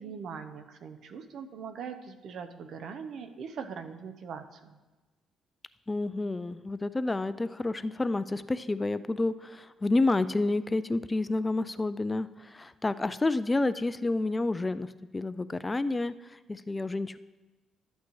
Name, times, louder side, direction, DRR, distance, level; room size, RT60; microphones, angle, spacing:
voice 1, 0.0-4.8, right 6 dB, 70° right, 8 dB, 0.7 m, -41 dB
voice 2, 5.9-17.2, left 2 dB, 20° left, 14 dB, 0.3 m, -29 dB
12.5 x 8.2 x 3.2 m, 1.2 s
cardioid pair, 90°, 0 cm